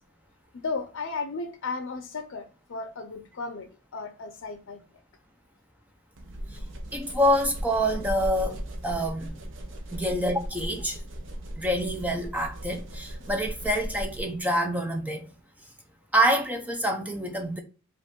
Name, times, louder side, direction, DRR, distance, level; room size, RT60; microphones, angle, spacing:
voice 1, 0.5-4.8, left 4 dB, 75° left, 0.6 m, -35 dB
sound 1, 6.2-14.4, equal, 65° right, 0.7 m, -37 dB
voice 2, 6.9-9.3 9.9-11.0 11.6-15.2 16.1-17.6, equal, 5° right, 0.5 m, -26 dB
5.2 x 2.4 x 3.6 m
head